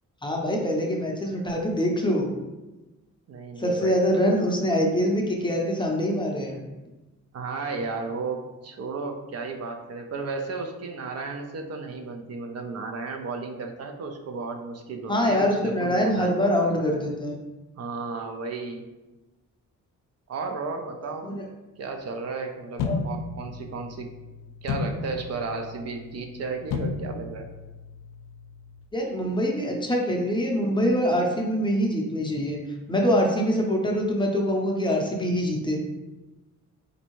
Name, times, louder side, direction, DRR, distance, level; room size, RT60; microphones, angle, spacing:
voice 1, 0.2-2.3 3.6-6.6 15.1-17.4 21.2-21.4 22.8-23.0 28.9-32.6 32.9-35.8, equal, 15° left, 0 dB, 0.5 m, -24 dB
voice 2, 3.3-4.0 7.3-16.3 17.8-18.8 20.3-21.3 21.8-24.1 24.6-27.5, right 4 dB, 55° right, 4 dB, 0.4 m, -34 dB
sound 1, 22.8-28.8, left 4 dB, 80° left, 0.5 m, -34 dB
4.2 x 2.6 x 3.0 m, 1.1 s
cardioid pair, 125°, 31 cm